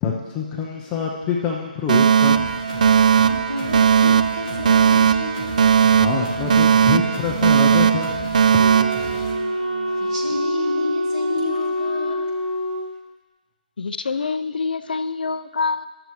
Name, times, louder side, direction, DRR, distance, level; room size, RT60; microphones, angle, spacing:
voice 1, 0.0-2.6 6.0-8.6, left 6 dB, 15° left, -1 dB, 0.6 m, -26 dB
Alarm, 1.9-9.9, right 7 dB, 55° right, 0.4 m, -17 dB
sound 1, 2.2-9.3, left 4 dB, 35° left, 1.3 m, -36 dB
voice 2, 3.1-5.7 9.9-12.3, left 1 dB, 25° right, -4 dB, 1.9 m, -31 dB
Wind instrument woodwind instrument, 8.6-12.9, equal, 85° right, 1.1 m, -25 dB
voice 3, 13.8-15.9, left 4 dB, 70° left, 12 dB, 0.4 m, -26 dB
12.5 x 6.9 x 3.2 m, 1.3 s
hypercardioid pair, 155°, 5 cm